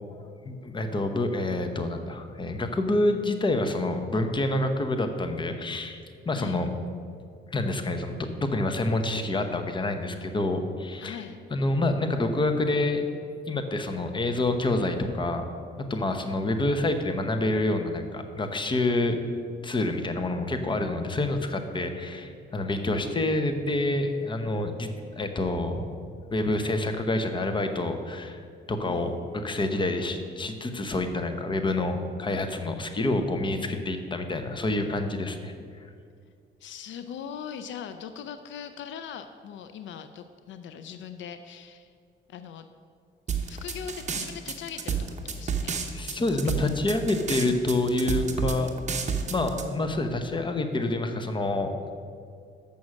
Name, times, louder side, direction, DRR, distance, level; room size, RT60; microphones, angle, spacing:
voice 1, 0.1-6.0 6.3-6.7 7.5-11.2 11.5-13.0 13.5-15.5 15.8-19.2 19.6-24.9 25.2-25.9 26.3-28.4 28.7-35.5 45.9-48.7 49.3-51.9, left 2 dB, 25° left, 7 dB, 0.8 m, -27 dB
voice 2, 6.3-6.6 11.0-11.4 19.0-19.2 28.8-29.2 36.6-41.9 42.3-42.6 43.5-46.0 46.3-46.6, left 8 dB, 70° left, 9 dB, 0.5 m, -41 dB
sound 1, 43.3-49.6, right 6 dB, 35° right, 0.9 m, -30 dB
7.0 x 6.2 x 6.3 m, 2.2 s
cardioid pair, 90°, 20 cm